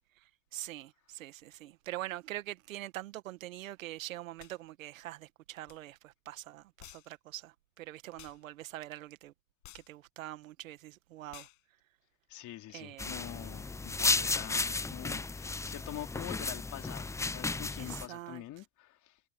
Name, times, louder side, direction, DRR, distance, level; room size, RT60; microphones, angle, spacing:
voice 1, 0.2-9.3 9.7-11.5 12.7-13.5 17.8-18.4, right 15 dB, 90° right, 1.9 m, -44 dB
sound 1, 4.4-4.6 5.7-5.8 6.8-7.1 8.2-8.4 9.6-9.9 11.3-11.6, left 27 dB, 70° left, 6.2 m, -52 dB
voice 2, 12.3-19.2, left 14 dB, 50° left, 3.5 m, -45 dB
sound 2, 13.0-18.1, left 3 dB, 10° left, 0.6 m, -34 dB
supercardioid pair, 100°, 39 cm